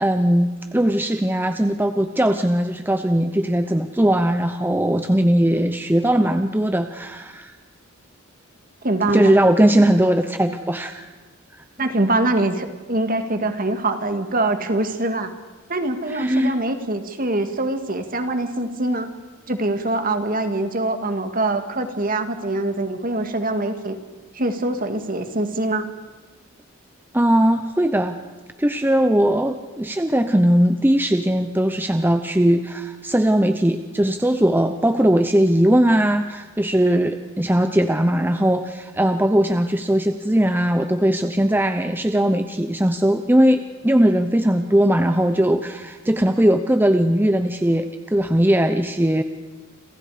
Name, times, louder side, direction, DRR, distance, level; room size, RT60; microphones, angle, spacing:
voice 1, 0.0-7.5 9.1-11.1 16.1-16.5 27.1-28.2 28.6-49.2, right 1 dB, 10° right, 8 dB, 0.8 m, -19 dB
voice 2, 8.8-9.3 11.8-15.3 15.7-19.1 19.5-24.0 24.3-25.9, right 2 dB, 40° right, 7 dB, 2.2 m, -23 dB
29.5 x 27.0 x 5.1 m, 1.3 s
head